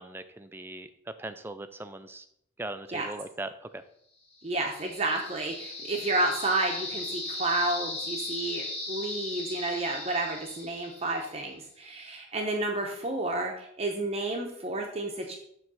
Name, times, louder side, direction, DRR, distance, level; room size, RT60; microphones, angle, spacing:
voice 1, 0.0-2.3 2.6-3.8, right 2 dB, 10° right, 10 dB, 0.3 m, -39 dB
sound 1, 4.4-11.4, left 2 dB, 25° left, 1.3 m, -37 dB
voice 2, 4.4-15.4, right 2 dB, 30° right, 2 dB, 0.7 m, -31 dB
7.1 x 3.2 x 6.2 m, 0.71 s
head